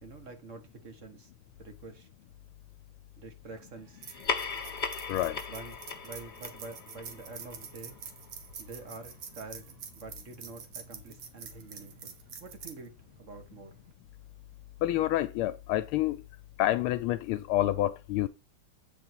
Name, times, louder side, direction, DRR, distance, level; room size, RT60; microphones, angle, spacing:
voice 1, 0.0-1.3 1.6-2.1 3.2-4.0 5.5-8.0 8.6-12.9 13.2-13.7, right 3 dB, 40° right, 1.7 m, -47 dB
sound 1, 3.5-13.9, right 7 dB, 70° right, 2.0 m, -47 dB
sound 2, 4.0-8.9, left 5 dB, 50° left, 0.5 m, -38 dB
voice 2, 5.1-5.4 14.8-16.2 16.6-18.3, left 14 dB, 80° left, 1.4 m, -28 dB
8.4 x 5.5 x 4.5 m
omnidirectional pair, 2.4 m